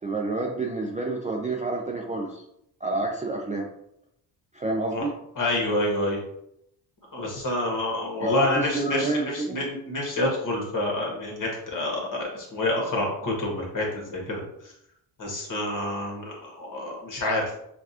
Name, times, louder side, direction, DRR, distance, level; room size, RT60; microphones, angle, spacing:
voice 1, 0.0-2.4 2.8-3.7 4.5-5.1 8.2-9.6, right 2 dB, 15° right, -1 dB, 0.4 m, -28 dB
voice 2, 5.4-6.2 7.1-14.7 15.2-17.7, left 1 dB, 45° left, -1 dB, 1.4 m, -28 dB
4.5 x 2.4 x 2.8 m, 0.76 s
cardioid pair, 90°, 45 cm